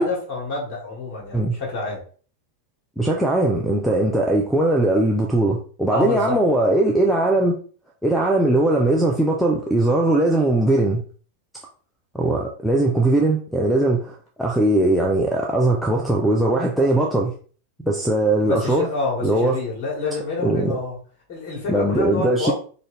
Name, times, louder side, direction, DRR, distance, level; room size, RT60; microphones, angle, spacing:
voice 1, 0.0-2.0 5.9-6.4 18.3-21.0 21.3-22.5, left 3 dB, 35° left, 1.7 m, -28 dB
voice 2, 3.0-7.6 8.0-11.0 12.1-17.3 17.8-18.9 19.2-19.6 20.4-20.8 21.7-22.5, right 2 dB, ahead, 0.5 m, -20 dB
3.8 x 2.6 x 3.3 m
figure-of-eight pair, 90°, 0 cm